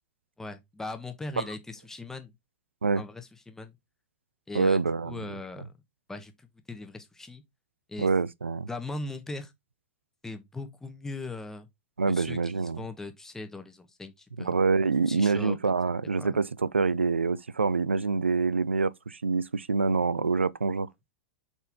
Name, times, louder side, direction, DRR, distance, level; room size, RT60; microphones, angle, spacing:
voice 1, 0.4-2.3 3.0-3.7 4.5-5.7 6.1-7.4 7.9-8.1 8.7-9.5 10.2-11.7 12.1-14.5 15.1-15.6 16.2-16.4, left 3 dB, 5° left, 1.3 m, -39 dB
voice 2, 4.5-5.3 8.0-8.7 12.0-12.8 14.4-20.9, right 4 dB, 80° right, 0.4 m, -26 dB
8.1 x 4.4 x 3.5 m
figure-of-eight pair, 95°, 6 cm